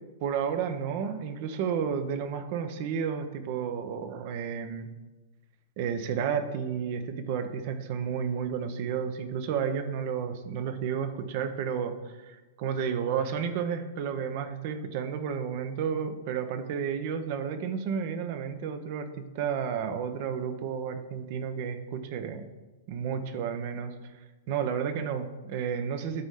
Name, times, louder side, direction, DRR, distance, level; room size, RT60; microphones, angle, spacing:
voice 1, 0.2-4.9 5.8-12.0 12.2-22.4 22.9-23.9 24.5-26.3, right 7 dB, 50° right, 9 dB, 0.9 m, -31 dB
12.5 x 4.2 x 3.8 m, 1.2 s
hypercardioid pair, 115°, 0 cm